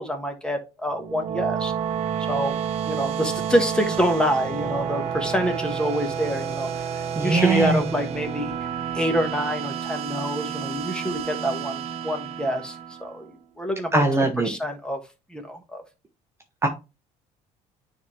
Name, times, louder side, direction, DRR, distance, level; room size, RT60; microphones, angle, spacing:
voice 1, 0.0-1.7 2.3-8.5 8.9-13.3 13.6-15.0 15.3-15.8, equal, 5° left, 1.3 m, -26 dB
sound 1, 0.9-13.3, right 8 dB, 50° right, 0.8 m, -30 dB
voice 2, 7.1-7.8 13.9-14.5 16.6-16.7, right 3 dB, 20° right, 0.9 m, -21 dB
9.4 x 3.6 x 3.1 m
cardioid pair, 130°, 14 cm